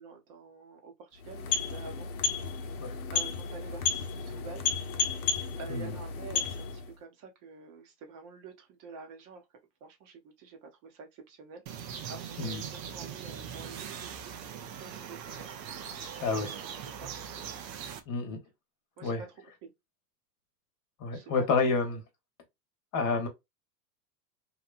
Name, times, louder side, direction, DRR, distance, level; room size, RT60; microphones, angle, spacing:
voice 1, 0.0-2.6 3.1-4.7 5.0-5.3 5.6-9.5 9.8-14.3 14.8-15.7 16.4-17.1 19.0-19.3 19.6-19.7 21.1-21.5, right 4 dB, 40° right, 0.8 m, -48 dB
sound 1, 1.2-7.0, left 6 dB, 60° left, 0.8 m, -33 dB
sound 2, 11.7-18.0, right 8 dB, 85° right, 0.8 m, -41 dB
voice 2, 18.1-18.4 19.0-19.2 21.0-22.0 22.9-23.3, left 4 dB, 40° left, 1.0 m, -29 dB
2.9 x 2.2 x 2.4 m
hypercardioid pair, 110°, 49 cm